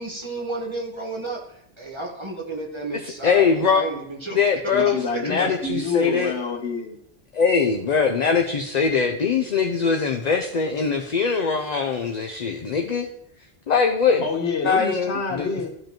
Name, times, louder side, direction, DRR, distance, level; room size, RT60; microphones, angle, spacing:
voice 1, 0.0-5.2, right 3 dB, 25° right, -1 dB, 1.4 m, -32 dB
voice 2, 3.2-3.8 4.3-4.9 5.2-6.3 7.3-13.1 13.7-14.3 14.6-15.5, left 5 dB, 50° left, 3 dB, 0.6 m, -21 dB
voice 3, 4.7-7.0 14.2-15.7, left 4 dB, 90° left, 4 dB, 1.4 m, -27 dB
13.5 x 5.2 x 3.0 m, 0.74 s
omnidirectional pair, 1.1 m